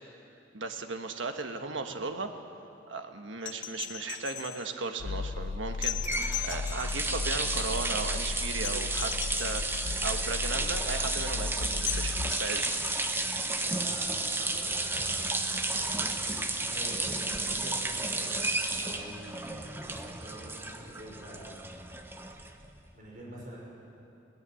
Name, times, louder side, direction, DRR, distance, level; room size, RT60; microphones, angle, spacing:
voice 1, 0.5-2.3 2.9-9.1 9.4-12.8, right 3 dB, 90° right, 6 dB, 1.4 m, -36 dB
sound 1, 3.4-4.7 5.8-7.3 8.6-9.9 11.9-13.3 15.1-15.2, left 12 dB, 85° left, 0.9 m, -39 dB
sound 2, 5.0-12.3, left 4 dB, 65° left, 0.5 m, -36 dB
sound 3, 5.7-22.8, right 2 dB, 10° right, 1.0 m, -32 dB
voice 2, 13.6-21.9 22.9-23.7, right 1 dB, 45° right, -3 dB, 5.7 m, -46 dB
20.0 x 18.5 x 7.7 m, 2.8 s
head